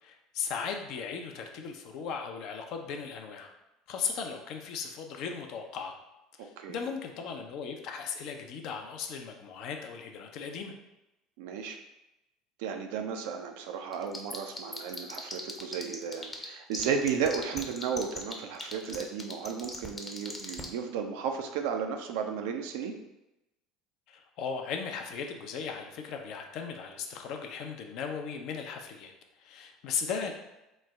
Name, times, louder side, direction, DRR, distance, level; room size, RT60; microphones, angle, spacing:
voice 1, 0.0-3.5 3.9-5.9 6.4-10.7 24.1-29.1 29.4-30.3, left 6 dB, 60° left, 4 dB, 0.4 m, -37 dB
voice 2, 6.4-6.8 11.4-11.8 12.6-22.9, right 6 dB, 75° right, 4 dB, 0.4 m, -34 dB
sound 1, 13.9-16.4 16.7-20.6, left 2 dB, 15° left, 0.6 m, -38 dB
3.1 x 2.0 x 3.4 m, 0.94 s
hypercardioid pair, 75°, 0 cm